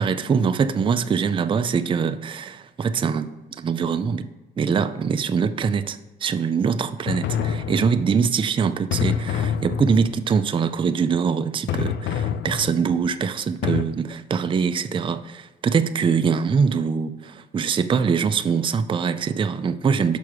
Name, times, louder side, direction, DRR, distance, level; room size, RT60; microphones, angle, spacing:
voice 1, 0.0-3.3 3.6-4.3 4.6-20.2, right 6 dB, 25° right, 0.4 m, -23 dB
sound 1, 7.1-8.3 8.9-10.3 11.7-13.1 13.6-13.8, left 8 dB, 65° left, 0.4 m, -26 dB
6.0 x 4.6 x 4.7 m
cardioid pair, 90°, 20 cm